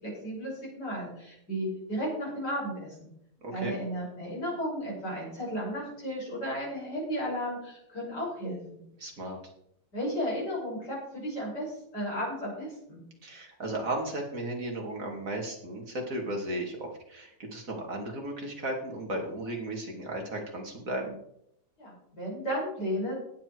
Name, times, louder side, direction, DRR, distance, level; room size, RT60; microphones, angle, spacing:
voice 1, 0.0-3.1 3.5-8.8 9.9-13.0 21.8-23.1, equal, 60° left, -5 dB, 6.5 m, -34 dB
voice 2, 3.4-3.8 9.0-9.4 13.2-21.2, right 1 dB, 45° right, 1 dB, 3.0 m, -35 dB
18.5 x 7.4 x 4.7 m, 0.74 s
omnidirectional pair, 2.0 m